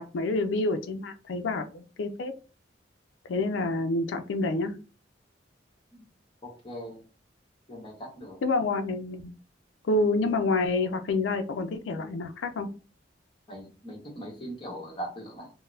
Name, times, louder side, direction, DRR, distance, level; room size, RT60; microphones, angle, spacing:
voice 1, 0.0-2.3 3.3-4.8 8.4-9.3 9.8-12.7, left 2 dB, 90° left, 8 dB, 0.4 m, -28 dB
voice 2, 6.4-7.0 7.7-8.4 13.5-15.5, equal, 30° left, -2 dB, 1.2 m, -40 dB
3.8 x 2.1 x 2.6 m, 0.34 s
head